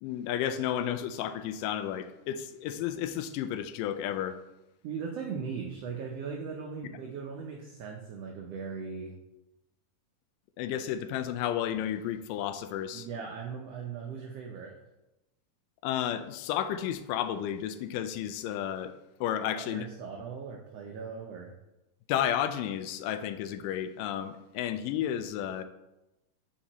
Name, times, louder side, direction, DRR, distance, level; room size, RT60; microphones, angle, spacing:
voice 1, 0.0-4.4 10.6-13.1 15.8-18.9 19.2-19.9 22.1-25.7, left 10 dB, 90° left, 11 dB, 2.2 m, -32 dB
voice 2, 4.8-9.1 12.9-14.7 19.5-21.5, right 6 dB, 85° right, 0 dB, 1.4 m, -39 dB
8.7 x 5.4 x 3.0 m, 0.95 s
omnidirectional pair, 3.8 m